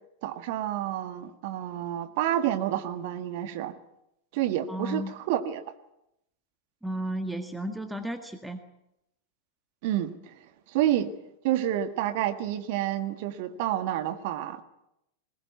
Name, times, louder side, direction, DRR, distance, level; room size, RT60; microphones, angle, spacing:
voice 1, 0.2-3.7 4.3-5.6 9.8-10.3 10.7-11.1 11.4-14.6, right 12 dB, 50° right, 10 dB, 1.7 m, -29 dB
voice 2, 4.7-5.1 6.8-8.6, right 1 dB, 5° right, 7 dB, 1.8 m, -33 dB
21.5 x 19.5 x 9.5 m, 0.82 s
figure-of-eight pair, 90°, 0 cm